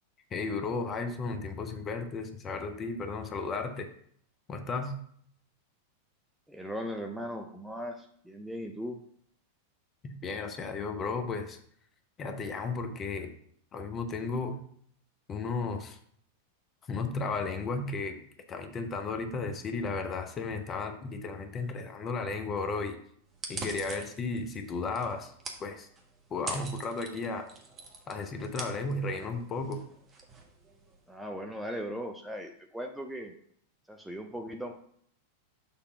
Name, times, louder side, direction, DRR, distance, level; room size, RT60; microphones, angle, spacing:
voice 1, 0.3-3.9 4.5-4.9 10.0-11.6 12.2-13.3 13.7-14.6 15.3-16.0 16.9-18.2 18.5-23.0 23.5-25.3 25.6-25.9 26.3-27.5 28.1-29.9, left 4 dB, 25° left, 7 dB, 1.0 m, -34 dB
voice 2, 6.5-9.0 31.1-33.3 33.9-34.7, equal, 5° right, 3 dB, 0.7 m, -38 dB
sound 1, 23.3-31.1, right 3 dB, 25° right, 1.4 m, -44 dB
6.9 x 3.4 x 5.8 m, 0.63 s
figure-of-eight pair, 90°, 0 cm